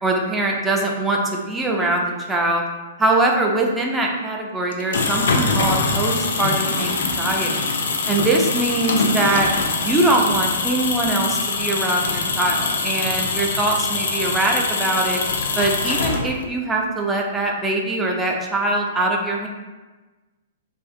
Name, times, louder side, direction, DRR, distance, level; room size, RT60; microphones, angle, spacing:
voice 1, 0.0-2.6 3.0-7.7 8.1-9.5 9.8-15.2 15.6-19.5, right 2 dB, 10° right, 0 dB, 0.4 m, -22 dB
sound 1, 4.7-16.6, left 4 dB, 65° left, 0.3 m, -23 dB
2.5 x 2.4 x 2.4 m, 1.2 s
figure-of-eight pair, 110°, 0 cm